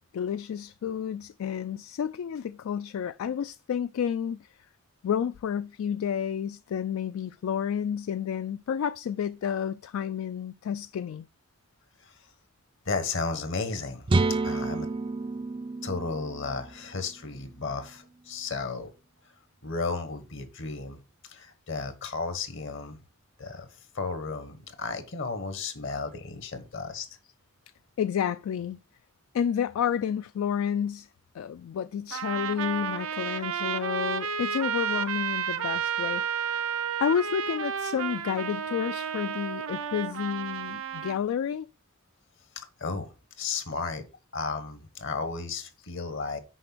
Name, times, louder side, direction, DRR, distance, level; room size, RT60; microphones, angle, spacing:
voice 1, 0.0-4.5 5.0-11.3 28.0-28.8 29.3-31.1 31.3-36.7 37.0-41.7, left 8 dB, 80° left, 0.3 m, -30 dB
voice 2, 12.8-14.1 14.4-14.9 15.8-18.9 19.6-21.0 21.2-23.0 23.4-23.7 23.9-27.1 42.5-43.1 43.4-44.0 44.3-46.4, left 4 dB, 65° left, 1.3 m, -34 dB
sound 1, 14.1-17.9, right 3 dB, 25° right, 0.4 m, -30 dB
Trumpet, 32.1-41.2, right 7 dB, 85° right, 0.6 m, -31 dB
6.4 x 5.0 x 6.0 m
head